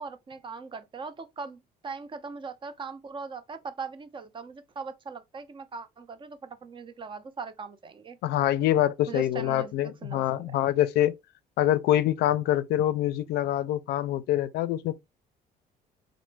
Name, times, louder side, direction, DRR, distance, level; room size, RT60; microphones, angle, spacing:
voice 1, 0.0-8.2 9.1-10.5, right 5 dB, 30° right, 0.4 m, -40 dB
voice 2, 8.2-11.1 11.6-14.9, left 12 dB, 75° left, 0.4 m, -25 dB
3.0 x 2.0 x 3.2 m
cardioid pair, 110°, 17 cm